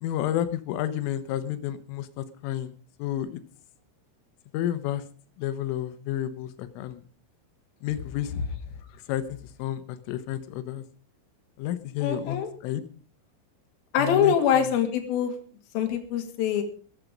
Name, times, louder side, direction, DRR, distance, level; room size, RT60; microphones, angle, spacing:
voice 1, 0.0-3.4 4.5-5.0 5.4-7.0 7.8-8.3 9.1-10.8 11.6-12.9 14.0-14.4, left 12 dB, 80° left, 12 dB, 3.6 m, -31 dB
voice 2, 12.0-12.5 13.9-15.3 15.7-16.6, left 8 dB, 55° left, 5 dB, 3.3 m, -24 dB
14.0 x 12.5 x 5.2 m, 0.44 s
omnidirectional pair, 5.9 m